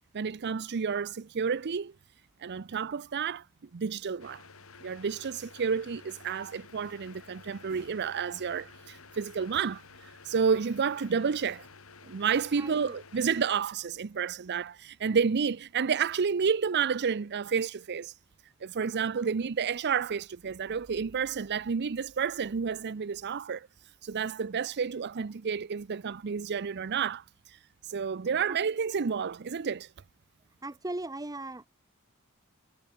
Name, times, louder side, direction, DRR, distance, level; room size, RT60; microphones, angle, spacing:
voice 1, 0.1-1.9 2.4-3.5 3.7-4.4 4.8-11.7 12.0-18.1 18.6-23.7 24.0-29.9, right 6 dB, 50° right, 0.5 m, -30 dB
sound 1, 4.2-13.4, left 4 dB, 70° left, 3.1 m, -52 dB
voice 2, 12.6-13.0 28.5-28.6 30.6-31.7, right 2 dB, 15° right, 1.1 m, -38 dB
head